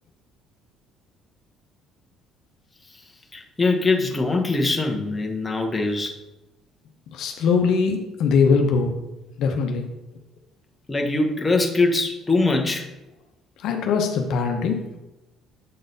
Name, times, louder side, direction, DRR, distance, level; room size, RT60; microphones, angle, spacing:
voice 1, 3.3-6.2 10.9-12.9, left 3 dB, 15° left, 1 dB, 1.1 m, -22 dB
voice 2, 7.1-8.9 9.4-9.9 13.6-14.8, left 5 dB, 70° left, 4 dB, 0.8 m, -21 dB
7.7 x 3.9 x 4.0 m, 0.98 s
cardioid pair, 105°, 0 cm